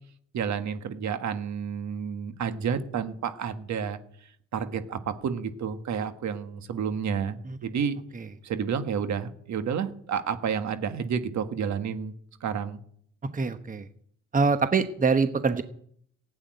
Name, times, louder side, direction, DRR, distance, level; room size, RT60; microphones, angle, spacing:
voice 1, 0.3-8.0 8.4-12.1 12.4-12.8, right 7 dB, 65° right, 9 dB, 1.6 m, -30 dB
voice 2, 13.3-13.8 14.3-15.6, right 4 dB, 25° right, 10 dB, 1.1 m, -24 dB
15.0 x 8.8 x 9.2 m, 0.64 s
cardioid pair, 90°, 30 cm